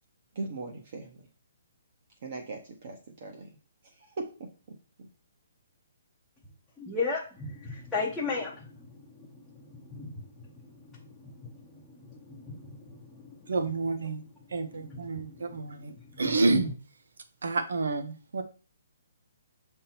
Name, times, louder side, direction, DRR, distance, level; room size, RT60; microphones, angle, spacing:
voice 1, 0.3-1.3 2.2-3.5 3.8-4.2 5.0-5.1, right 3 dB, 35° right, 1 dB, 0.8 m, -39 dB
voice 2, 6.8-13.5 14.5-16.6, left 4 dB, 5° left, -8 dB, 0.7 m, -38 dB
voice 3, 13.5-14.2 14.5-16.7 17.4-18.4, right 3 dB, 85° right, 9 dB, 0.9 m, -29 dB
6.7 x 3.6 x 4.4 m, 0.36 s
hypercardioid pair, 180°, 0 cm